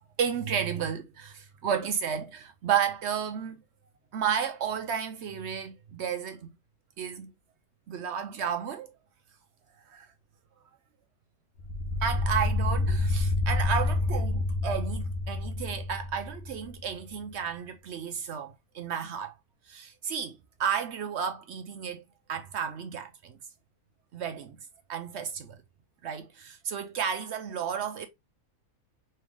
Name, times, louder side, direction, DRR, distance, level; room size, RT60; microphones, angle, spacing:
voice 1, 0.2-3.6 4.1-6.5 7.0-7.3 7.9-8.9 9.9-10.1 12.0-19.3 19.7-22.0 22.3-23.4 24.1-24.6 24.9-25.6 26.0-28.1, right 7 dB, 70° right, 0.6 m, -32 dB
Dramatic Drone Hit, 11.6-16.9, left 2 dB, 60° left, 1.1 m, -28 dB
3.2 x 3.2 x 3.5 m
omnidirectional pair, 1.6 m